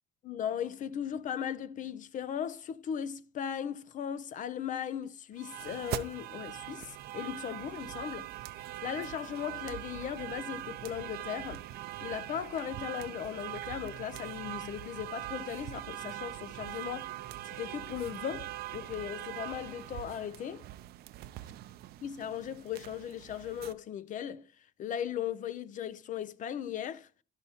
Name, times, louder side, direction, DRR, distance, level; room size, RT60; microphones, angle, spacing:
voice 1, 0.2-8.3 8.8-11.6 12.0-17.1 17.4-20.7 22.0-27.1, left 9 dB, 50° left, 0.5 m, -37 dB
sound 1, 5.4-23.7, right 14 dB, 70° right, 0.5 m, -42 dB
12.0 x 5.6 x 2.8 m
cardioid pair, 110°, 17 cm